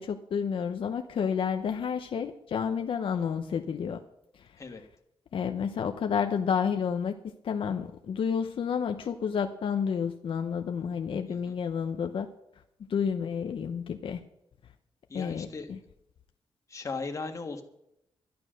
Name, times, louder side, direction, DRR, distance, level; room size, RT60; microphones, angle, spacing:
voice 1, 0.0-4.0 4.3-4.6 5.3-7.2 7.4-12.3 12.9-14.2 15.1-15.8, left 7 dB, 70° left, 6 dB, 0.8 m, -30 dB
voice 2, 15.1-15.7 16.7-17.6, left 4 dB, 35° left, 4 dB, 1.6 m, -37 dB
12.0 x 11.0 x 6.4 m, 0.80 s
wide cardioid pair, 165°, 9 cm